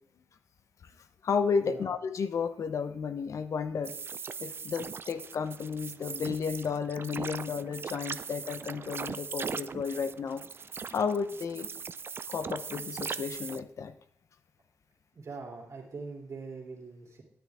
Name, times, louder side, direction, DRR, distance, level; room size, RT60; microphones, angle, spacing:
voice 1, 1.2-3.9 4.4-10.4 10.9-11.7 12.3-13.9, left 6 dB, 65° left, 11 dB, 0.7 m, -32 dB
sound 1, 3.8-13.6, right 5 dB, 45° right, 0.4 m, -40 dB
voice 2, 15.1-17.2, right 4 dB, 60° right, -2 dB, 2.9 m, -42 dB
10.0 x 9.3 x 3.5 m, 0.65 s
cardioid pair, 80°, 6 cm